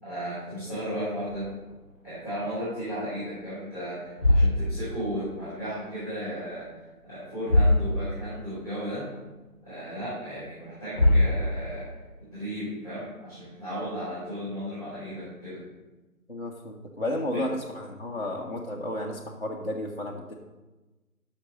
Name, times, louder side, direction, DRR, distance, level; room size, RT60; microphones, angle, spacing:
voice 1, 0.0-1.5 2.0-6.7 7.0-9.1 9.6-11.9 12.2-15.6 17.3-17.4, equal, 10° right, -14 dB, 3.0 m, -35 dB
sound 1, 1.2-2.9 3.2-3.5 4.0-5.8 6.1-6.8 7.0-7.1 7.4-8.4 8.8-8.9 9.5-9.6 10.6-10.7 10.9-11.9, left 1 dB, 10° left, 1.7 m, -25 dB
voice 2, 16.3-20.3, left 1 dB, 40° left, -3 dB, 0.7 m, -32 dB
6.0 x 5.8 x 6.6 m, 1.1 s
figure-of-eight pair, 175°, 46 cm